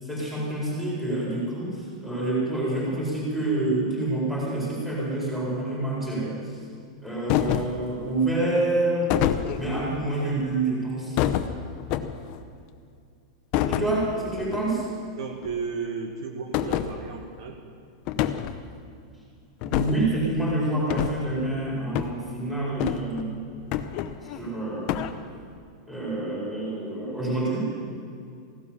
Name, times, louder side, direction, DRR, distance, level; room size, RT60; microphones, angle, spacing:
voice 1, 0.0-6.4 7.0-9.2 9.5-11.2 13.7-14.8 19.6-23.4 24.3-25.0 25.9-27.7, right 2 dB, 5° right, -6 dB, 4.5 m, -27 dB
sound 1, 7.3-7.8 9.1-9.9 11.2-12.4 13.5-13.9 14.4-14.6 14.9-15.0 15.4-15.6 16.5-16.9 18.1-18.6 19.6-20.1 20.9-21.2 22.0-22.2 22.8-23.2 23.7-24.4 24.9-25.1, left 11 dB, 35° left, 0.7 m, -26 dB
voice 2, 15.2-17.6, right 5 dB, 65° right, 3 dB, 1.7 m, -34 dB
15.5 x 12.0 x 7.1 m, 2.4 s
supercardioid pair, 170°, 3 cm